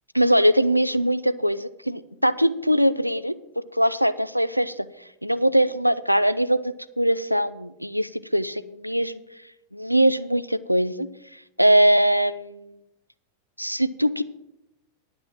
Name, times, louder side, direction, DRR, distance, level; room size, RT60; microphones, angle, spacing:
voice 1, 0.1-3.3 3.7-4.8 5.2-9.2 9.7-11.1 11.6-12.8 13.6-14.2, right 1 dB, 90° right, 15 dB, 0.4 m, -21 dB
10.5 x 6.1 x 7.5 m, 0.90 s
figure-of-eight pair, 90°, 0 cm